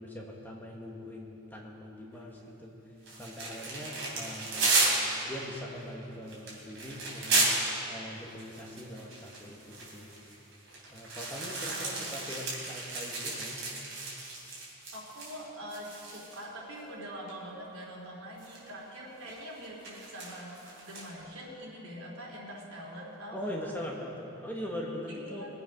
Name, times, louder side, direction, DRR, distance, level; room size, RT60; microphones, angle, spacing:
voice 1, 0.0-2.7 3.1-4.7 5.2-10.1 10.9-13.6 23.3-25.5, equal, 10° left, -2 dB, 1.2 m, -41 dB
sound 1, 3.1-7.8 8.3-15.4 15.7-16.4 17.3-17.4 18.4-18.7 19.3-21.1, right 3 dB, 55° right, 3.4 m, -33 dB
voice 2, 11.7-12.0 14.9-20.5 20.8-23.5 25.1-25.5, equal, 85° right, -3 dB, 3.4 m, -44 dB
21.5 x 8.0 x 5.4 m, 3.0 s
head